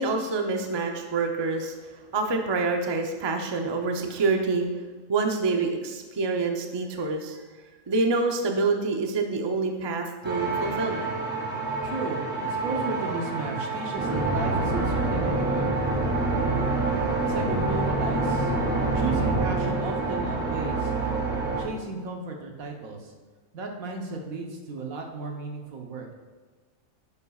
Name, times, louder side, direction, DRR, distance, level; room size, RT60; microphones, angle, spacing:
voice 1, 0.0-4.7 5.1-7.4 7.9-11.1, right 3 dB, 30° right, 3 dB, 0.5 m, -27 dB
sound 1, 10.2-21.6, right 3 dB, 10° right, 1.9 m, -27 dB
voice 2, 11.8-15.9 17.2-18.5 18.9-20.9 21.6-23.1 23.5-26.1, right 3 dB, 85° right, 2 dB, 1.4 m, -34 dB
10.0 x 7.3 x 2.4 m, 1.4 s
omnidirectional pair, 1.4 m